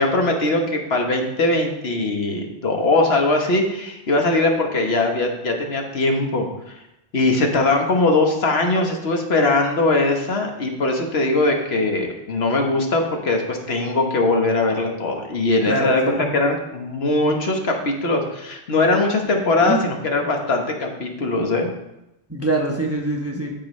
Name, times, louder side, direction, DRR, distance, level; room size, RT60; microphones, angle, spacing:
voice 1, 0.0-6.8 7.1-21.7, left 2 dB, 65° left, 3 dB, 1.3 m, -21 dB
voice 2, 15.7-16.2 19.5-19.8 22.3-23.5, right 2 dB, 15° right, 0 dB, 0.8 m, -24 dB
13.5 x 4.7 x 3.2 m, 0.88 s
omnidirectional pair, 1.2 m